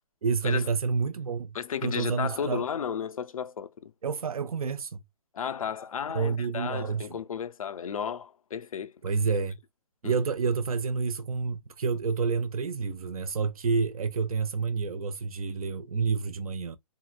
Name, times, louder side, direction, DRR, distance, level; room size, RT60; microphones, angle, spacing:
voice 1, 0.2-1.6 1.8-2.6 4.0-5.0 6.1-7.2 9.0-9.6 10.0-16.8, right 5 dB, 75° right, 0.5 m, -29 dB
voice 2, 1.5-3.9 5.3-8.9 10.0-10.2, left 8 dB, 70° left, 0.5 m, -33 dB
3.7 x 2.0 x 2.4 m
hypercardioid pair, 150°, 18 cm